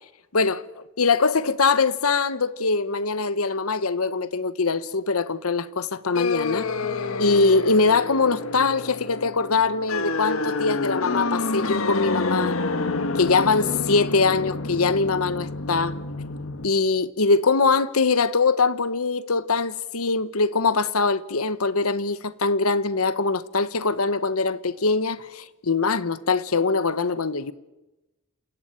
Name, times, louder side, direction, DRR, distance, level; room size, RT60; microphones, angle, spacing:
voice 1, 0.3-6.7 7.2-12.6 13.1-16.0 16.6-27.5, left 4 dB, 85° left, 1.2 m, -22 dB
sound 1, 6.1-16.6, left 3 dB, 70° left, 1.4 m, -28 dB
28.5 x 16.0 x 9.2 m
head